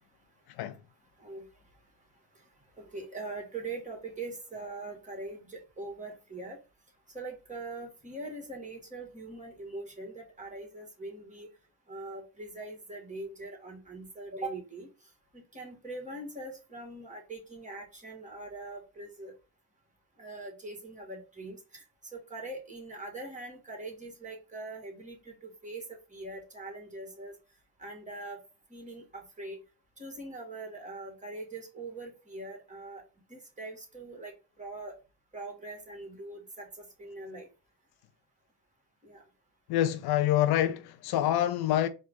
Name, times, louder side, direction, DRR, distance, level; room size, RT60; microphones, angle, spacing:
voice 1, 2.8-6.6 7.1-11.5 11.9-19.3 20.2-25.8 26.1-27.4 27.8-28.4 28.7-29.6 30.0-33.0 33.3-35.0 35.3-37.5 39.0-39.2, right 2 dB, 20° right, 2.2 m, -42 dB
voice 2, 39.7-41.9, left 12 dB, 70° left, 0.6 m, -26 dB
4.3 x 2.6 x 3.7 m
supercardioid pair, 70°, 40 cm